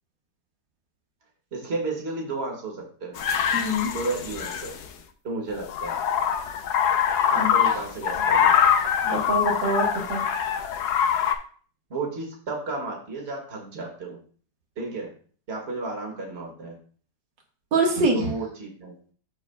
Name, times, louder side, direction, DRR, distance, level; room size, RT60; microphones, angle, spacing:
voice 1, 1.5-3.1 3.9-4.7 5.2-6.0 7.3-8.5 11.9-14.2 14.8-15.1 15.5-16.8 18.1-18.9, right 3 dB, 35° right, 0 dB, 2.0 m, -32 dB
sound 1, 3.2-4.9 5.5-11.3, left 8 dB, 70° left, 1.2 m, -23 dB
voice 2, 3.5-3.9 7.3-7.5 9.0-10.2 17.7-18.3, right 2 dB, 85° right, 0 dB, 2.3 m, -24 dB
14.0 x 4.7 x 2.3 m, 0.44 s
omnidirectional pair, 1.9 m